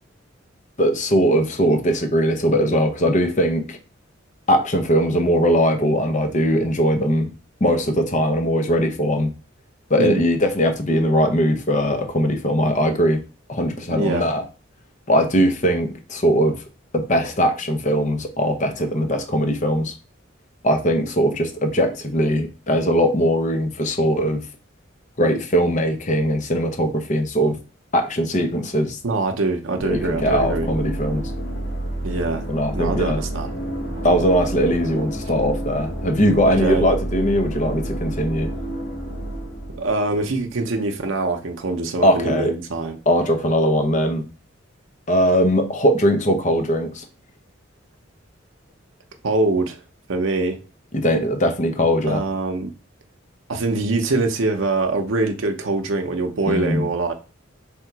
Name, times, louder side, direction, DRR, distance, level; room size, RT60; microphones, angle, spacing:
voice 1, 0.8-3.8 4.5-7.3 7.6-9.3 9.9-13.2 13.5-14.4 15.1-16.6 16.9-19.9 20.6-24.4 25.2-27.6 27.9-29.0 29.8-31.3 32.5-33.2 34.0-38.5 42.0-42.5 43.1-44.2 45.1-47.0 50.9-52.2 56.5-56.8, equal, 40° left, 0.8 m, -20 dB
voice 2, 13.9-14.3 29.0-30.7 32.0-32.5 32.7-33.5 36.4-36.9 39.7-43.0 49.2-49.8 50.1-50.6 52.0-52.7 53.5-57.1, right 2 dB, 75° right, 0.7 m, -23 dB
sound 1, 29.8-40.6, right 1 dB, 65° left, 1.4 m, -29 dB
3.5 x 2.9 x 4.6 m
head